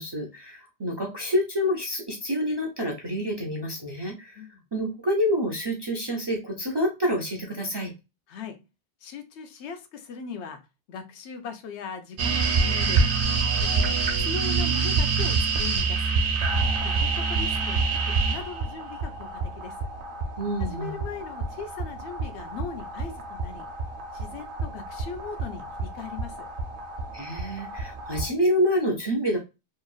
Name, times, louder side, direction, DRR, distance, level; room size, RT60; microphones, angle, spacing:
voice 1, 0.0-7.9 20.4-21.0 27.1-29.4, equal, 45° right, -1 dB, 0.3 m, -27 dB
voice 2, 8.3-8.6 9.0-10.6 10.9-13.0 13.6-16.0 16.8-19.8 20.6-23.7 24.1-26.5, left 5 dB, 90° left, 8 dB, 0.9 m, -39 dB
sound 1, 12.2-28.3, right 4 dB, 60° right, 0.7 m, -27 dB
2.9 x 2.5 x 2.2 m, 0.27 s
omnidirectional pair, 1.1 m